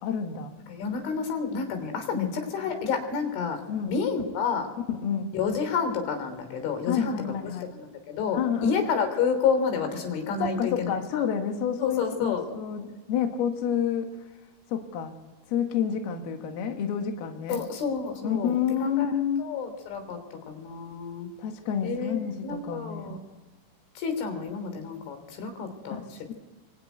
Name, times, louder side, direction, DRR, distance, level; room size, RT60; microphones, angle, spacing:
voice 1, 0.0-0.5 2.1-2.4 3.7-3.9 4.9-5.3 6.9-7.7 8.3-8.8 10.4-14.1 14.7-15.2 15.5-17.6 18.2-19.5 21.4-23.1 25.9-26.3, left 8 dB, 65° left, 5 dB, 3.3 m, -29 dB
voice 2, 0.7-2.3 2.5-3.6 3.9-4.7 5.3-7.2 7.8-10.9 11.8-12.4 17.5-18.5 18.8-19.1 19.4-20.2 20.5-21.3 21.8-23.2 24.0-26.0, left 6 dB, 85° left, 7 dB, 5.8 m, -29 dB
24.0 x 24.0 x 9.4 m, 1.3 s
omnidirectional pair, 5.3 m